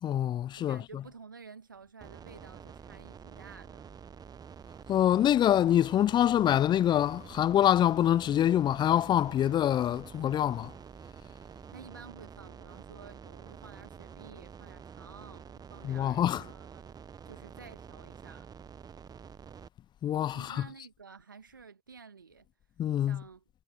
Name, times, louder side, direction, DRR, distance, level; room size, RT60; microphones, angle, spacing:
voice 1, 0.0-1.0 4.9-10.7 15.8-16.4 20.0-20.7 22.8-23.2, left 11 dB, 45° left, 0.4 m, -25 dB
voice 2, 0.6-4.0 11.7-16.8 17.3-18.5 20.3-22.5 23.0-23.4, right 5 dB, 90° right, 2.2 m, -52 dB
sound 1, 2.0-19.7, right 7 dB, 40° right, 1.1 m, -48 dB
figure-of-eight pair, 50°, 10 cm